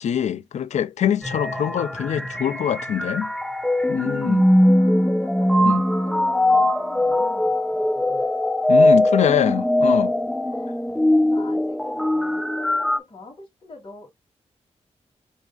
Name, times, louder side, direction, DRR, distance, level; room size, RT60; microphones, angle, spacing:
voice 1, 0.0-3.3 3.9-4.5 5.6-5.8 8.7-10.1, left 9 dB, 85° left, 0.4 m, -24 dB
sound 1, 1.2-13.0, left 1 dB, 5° left, 0.3 m, -20 dB
voice 2, 4.6-8.3 8.9-9.7 10.4-10.9 11.2-14.1, left 3 dB, 45° left, 2.6 m, -44 dB
4.0 x 3.7 x 2.3 m
wide cardioid pair, 115°, 11 cm